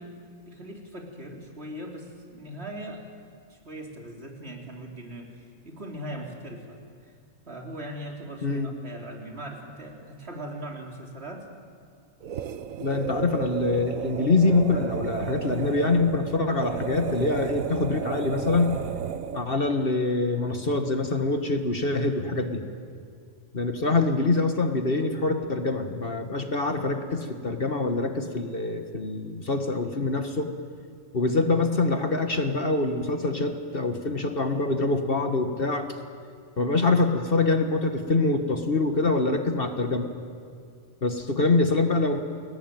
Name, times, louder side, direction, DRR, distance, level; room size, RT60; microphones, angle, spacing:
voice 1, 0.0-3.1 3.5-7.1 7.5-11.5, right 1 dB, 50° right, 1 dB, 3.7 m, -40 dB
sound 1, 12.2-19.6, right 7 dB, 80° right, 1.4 m, -33 dB
voice 2, 12.8-18.8 19.3-22.6 23.5-30.5 31.1-36.0 36.6-40.1 41.0-42.2, left 3 dB, 45° left, 6 dB, 1.7 m, -25 dB
30.0 x 20.5 x 9.2 m, 2.2 s
omnidirectional pair, 1.4 m